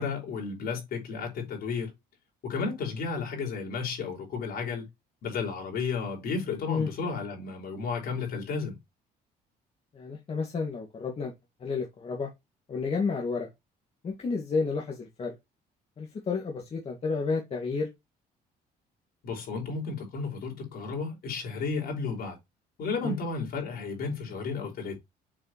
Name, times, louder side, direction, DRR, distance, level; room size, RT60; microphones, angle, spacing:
voice 1, 0.0-1.9 2.4-4.9 5.2-8.8 19.2-22.4 22.8-25.0, left 4 dB, 65° left, 4.7 m, -33 dB
voice 2, 9.9-11.3 11.6-12.3 12.7-13.5 14.0-15.4 16.0-17.9 23.0-23.2, left 4 dB, 35° left, 2.0 m, -31 dB
7.6 x 4.8 x 3.0 m
cardioid pair, 110°, 17 cm